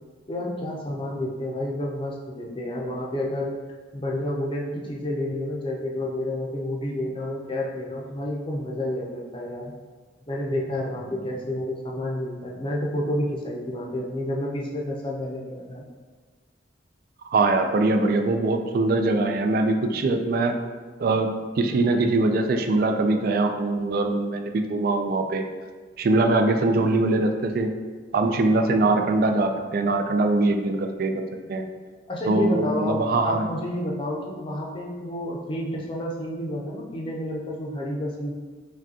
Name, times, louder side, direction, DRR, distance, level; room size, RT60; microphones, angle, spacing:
voice 1, 0.3-3.5 3.9-9.7 10.3-15.8 32.1-38.3, left 1 dB, 30° left, -2 dB, 0.5 m, -30 dB
voice 2, 17.3-20.5 21.0-21.3 21.6-25.4 26.0-27.7 28.1-31.7 32.3-33.5, right 2 dB, 55° right, 6 dB, 0.3 m, -22 dB
4.9 x 2.3 x 2.7 m, 1.5 s
head